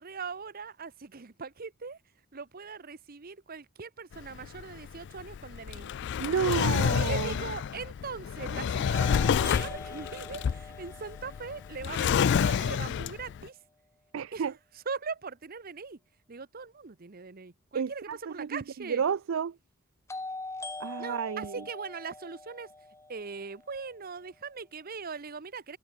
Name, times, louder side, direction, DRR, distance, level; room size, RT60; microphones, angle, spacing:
voice 1, 0.0-2.0 2.3-5.9 6.9-13.6 14.3-14.4 14.9-16.0 16.3-19.0 21.0-22.7 23.1-25.8, right 5 dB, 40° right, 0.8 m, -40 dB
Drawer open or close, 4.1-13.4, left 7 dB, 50° left, 0.3 m, -29 dB
voice 2, 6.2-7.4 14.1-14.5 17.7-19.6 20.8-21.6, right 6 dB, 60° right, 0.4 m, -31 dB
sound 1, 8.9-12.9 20.1-24.1, left 2 dB, 15° left, 2.1 m, -43 dB
open air
head